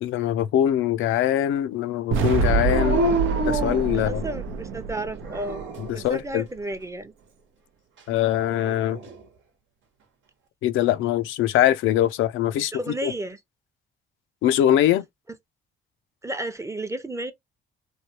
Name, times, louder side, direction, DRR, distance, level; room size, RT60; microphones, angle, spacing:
voice 1, 0.0-3.0 3.5-4.2 5.8-6.4 8.1-9.0 10.6-12.7 13.0-13.1 14.4-15.1, left 12 dB, 80° left, 0.4 m, -22 dB
sound 1, 2.1-6.3, right 5 dB, 90° right, 0.6 m, -26 dB
Dog, 2.7-4.6 5.2-6.0 8.3-9.2, right 2 dB, 75° right, 1.0 m, -28 dB
voice 2, 3.9-5.6 5.9-7.1 12.5-13.4 15.3-15.4 16.2-17.3, right 1 dB, 15° right, 0.6 m, -32 dB
3.1 x 2.2 x 2.8 m
cardioid pair, 90°, 20 cm